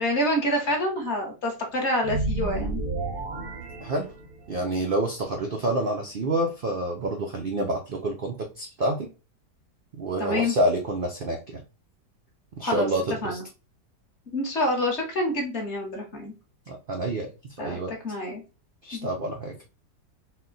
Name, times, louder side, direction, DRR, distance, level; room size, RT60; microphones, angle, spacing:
voice 1, 0.0-2.8 10.2-10.5 12.6-12.9 13.2-13.4 14.3-16.3 17.6-18.4 18.9-19.1, left 1 dB, 45° left, 1 dB, 1.2 m, -27 dB
sound 1, 2.0-4.6, right 2 dB, 50° right, 0.7 m, -31 dB
voice 2, 4.5-9.1 10.0-11.6 12.6-13.4 16.7-17.3 17.6-17.9 18.8-19.5, right 1 dB, 80° right, 2 dB, 0.4 m, -28 dB
4.2 x 2.2 x 3.8 m, 0.32 s
omnidirectional pair, 1.8 m